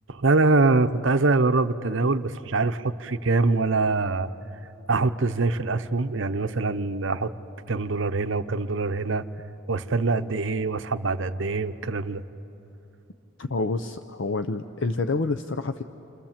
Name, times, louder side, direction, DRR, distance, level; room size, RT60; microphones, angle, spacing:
voice 1, 0.1-4.3 4.9-7.3 7.7-9.3 9.7-12.2, right 3 dB, 65° right, 10 dB, 0.8 m, -24 dB
voice 2, 13.4-15.8, left 3 dB, 65° left, 8 dB, 0.6 m, -28 dB
29.0 x 25.0 x 7.4 m, 3.0 s
head